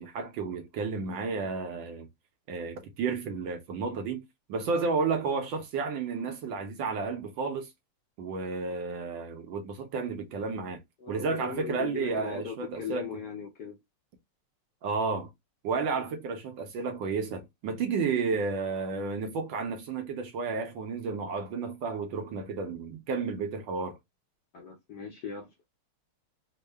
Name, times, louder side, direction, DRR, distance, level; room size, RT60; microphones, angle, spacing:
voice 1, 0.0-2.1 2.5-4.2 4.5-7.7 8.2-10.8 11.1-13.1 14.8-15.3 15.6-24.0, right 4 dB, 70° right, 1.3 m, -32 dB
voice 2, 11.0-13.8 16.0-16.1 24.5-25.5, left 6 dB, 70° left, 1.0 m, -39 dB
3.6 x 2.0 x 3.2 m
omnidirectional pair, 2.4 m